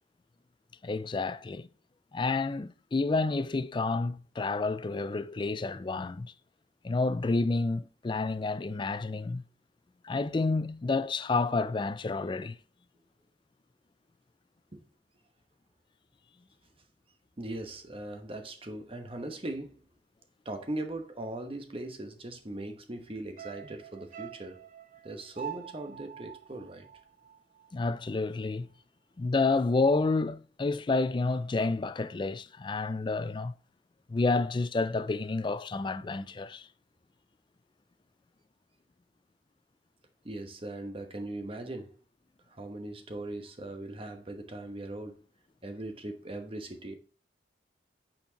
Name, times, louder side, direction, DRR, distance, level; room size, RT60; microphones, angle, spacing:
voice 1, 0.8-1.7 2.1-6.3 6.8-9.4 10.0-12.6 27.7-28.7 29.2-33.5 34.1-36.7, left 3 dB, 25° left, 0.3 m, -29 dB
voice 2, 17.4-19.8 20.4-24.6 25.0-26.9 40.2-41.9 42.5-45.2 45.6-47.0, right 1 dB, 30° right, 1.1 m, -39 dB
sound 1, 23.4-27.8 28.1-28.2, right 9 dB, 45° right, 0.5 m, -45 dB
8.3 x 4.4 x 2.9 m
head